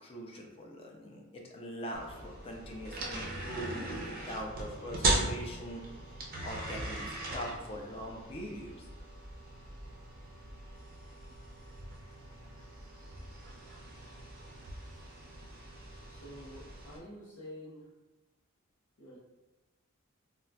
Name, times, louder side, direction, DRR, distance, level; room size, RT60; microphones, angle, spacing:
voice 1, 0.0-5.8 6.4-8.9, equal, 25° left, 0 dB, 0.4 m, -42 dB
sound 1, 1.9-17.0, right 2 dB, 40° right, 0.5 m, -39 dB
voice 2, 16.1-17.9 19.0-19.2, equal, 80° left, -8 dB, 0.7 m, -48 dB
3.8 x 2.2 x 2.2 m, 1.1 s
head